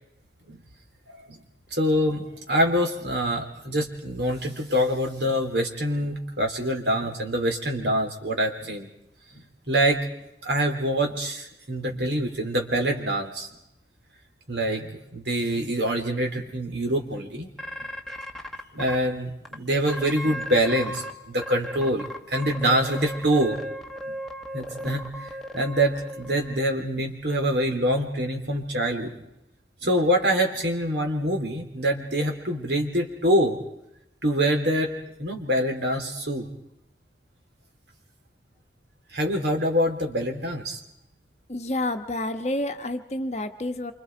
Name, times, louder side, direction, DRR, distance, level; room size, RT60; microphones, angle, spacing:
voice 1, 1.7-8.9 9.7-10.0 10.4-13.5 14.5-17.5 18.7-23.6 24.1-24.2 24.5-29.2 29.8-33.6 34.2-34.9 35.2-36.5 39.1-40.8, equal, 70° right, 3 dB, 3.4 m, -25 dB
sound 1, 17.6-19.0 19.4-19.5 19.9-21.1 21.4-26.6, equal, ahead, 1.3 m, -36 dB
voice 2, 41.5-43.9, left 1 dB, 40° left, 7 dB, 1.1 m, -29 dB
28.0 x 26.0 x 4.6 m, 0.81 s
head